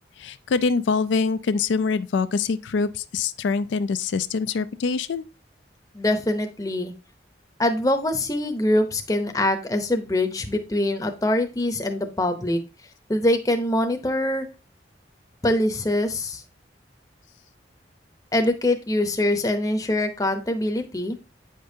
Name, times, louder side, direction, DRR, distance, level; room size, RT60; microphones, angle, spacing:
voice 1, 0.2-5.2, left 4 dB, 80° left, 0.4 m, -24 dB
voice 2, 5.9-6.9 7.6-12.6 13.1-14.5 15.4-16.4 18.3-21.2, left 1 dB, 20° left, 0.7 m, -23 dB
8.7 x 5.2 x 2.7 m
head